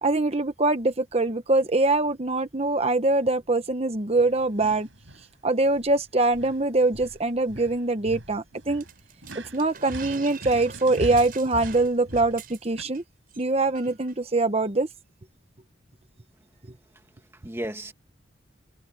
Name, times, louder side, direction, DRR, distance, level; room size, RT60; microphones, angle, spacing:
voice 1, 0.0-4.9 5.4-8.8 9.3-13.0 13.4-14.9, right 2 dB, 30° right, 1.0 m, -23 dB
sound 1, 4.1-5.3 5.6-6.0 6.3-12.8, right 1 dB, 75° right, 7.6 m, -41 dB
sound 2, 8.8-13.0 13.3-13.5 13.8-14.1, right 7 dB, 50° right, 7.2 m, -45 dB
voice 2, 16.9-17.9, right 1 dB, 15° right, 2.0 m, -36 dB
head